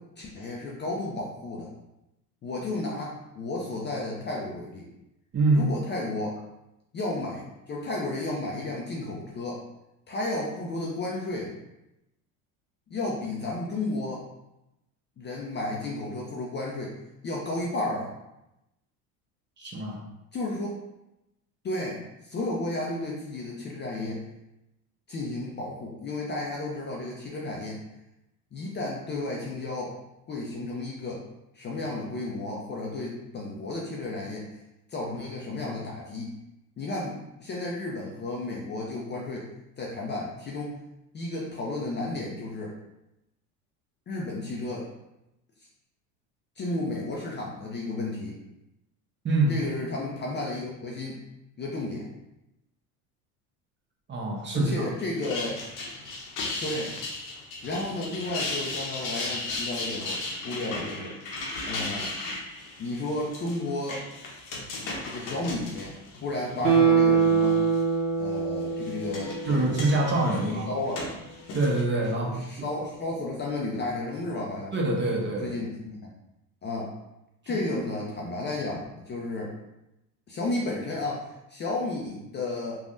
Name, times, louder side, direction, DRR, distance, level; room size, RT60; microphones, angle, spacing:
voice 1, 0.2-1.7 2.4-4.9 5.5-6.4 6.9-9.6 10.1-11.5 12.9-14.2 15.2-17.0 17.2-18.1 20.3-20.8 21.6-24.2 25.1-27.7 28.5-29.9 30.3-31.2 31.5-34.4 34.9-36.3 36.8-39.5 39.8-40.7 41.1-42.7 44.1-44.9 46.6-48.4 49.5-51.2 51.6-52.1 54.5-55.6 56.6-57.0 57.6-60.2 60.4-61.1 61.6-62.1 62.8-64.0 65.1-65.9 66.2-67.6 68.2-69.9 70.4-71.1 72.2-74.7 75.4-76.1 76.6-76.9 77.5-79.5 80.3-81.2 81.5-82.8, left 2 dB, 25° left, -3 dB, 0.4 m, -32 dB
voice 2, 5.3-5.7 19.6-20.0 49.2-49.5 54.1-54.8 69.4-70.7 71.5-72.7 74.7-75.6 77.5-77.6, right 2 dB, 25° right, -1 dB, 0.7 m, -25 dB
sound 1, 55.0-66.8 67.2-67.8 68.6-71.8, left 2 dB, 45° left, 0.8 m, -36 dB
Guitar, 66.6-69.9 70.3-70.4, right 6 dB, 70° right, 1.1 m, -23 dB
3.3 x 2.2 x 2.5 m, 0.90 s
hypercardioid pair, 85°, 44 cm